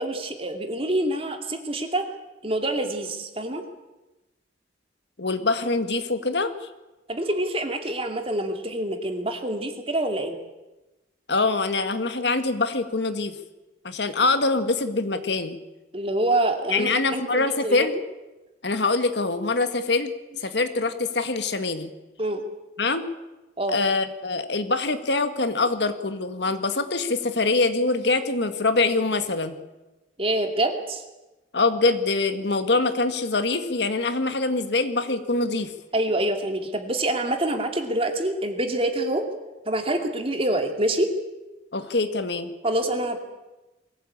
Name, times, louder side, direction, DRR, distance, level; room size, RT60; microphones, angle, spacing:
voice 1, 0.0-2.1 2.4-3.6 7.1-10.4 15.9-17.9 22.2-22.4 23.6-23.8 30.2-31.0 35.9-39.3 39.7-41.1 42.6-43.2, right 1 dB, 30° right, 5 dB, 2.6 m, -26 dB
voice 2, 5.2-6.7 11.3-13.4 13.8-15.6 16.7-17.9 18.6-20.1 20.4-21.9 22.8-23.1 23.7-29.6 31.5-35.7 41.7-42.5, left 3 dB, 65° left, 9 dB, 1.7 m, -24 dB
22.5 x 16.5 x 8.7 m, 1.1 s
head